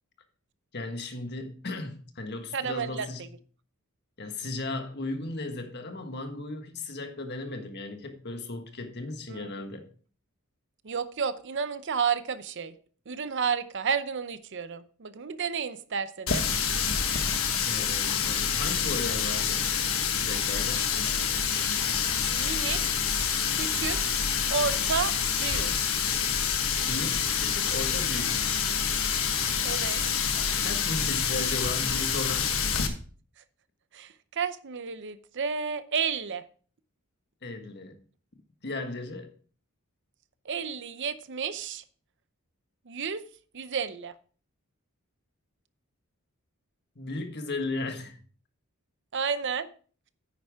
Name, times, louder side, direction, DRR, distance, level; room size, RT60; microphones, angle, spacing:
voice 1, 0.7-3.3 4.2-9.9 17.6-19.7 20.2-20.9 26.8-28.5 30.6-32.6 37.4-38.0 38.6-39.3 46.9-48.2, left 2 dB, 50° left, 1.5 m, -36 dB
voice 2, 2.5-3.1 9.3-9.5 10.8-12.7 13.1-16.4 22.3-23.0 23.6-24.0 24.5-25.7 29.6-30.0 33.9-36.4 40.5-41.8 42.9-43.2 43.5-44.1 49.1-49.7, right 6 dB, 55° right, 0.7 m, -31 dB
Water tap faucet, 16.3-32.9, left 7 dB, 65° left, 1.4 m, -27 dB
10.0 x 9.0 x 3.5 m
head